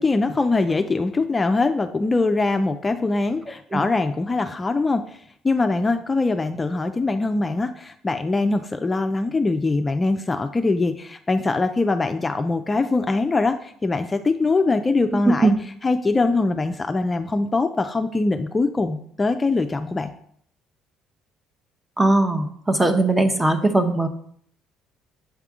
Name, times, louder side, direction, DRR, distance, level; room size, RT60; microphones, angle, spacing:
voice 1, 0.0-15.5 15.8-20.1, left 3 dB, 25° left, 7 dB, 0.4 m, -22 dB
voice 2, 22.0-24.1, right 2 dB, 15° right, 8 dB, 0.8 m, -19 dB
7.5 x 3.5 x 3.6 m, 0.64 s
supercardioid pair, 70°, 0 cm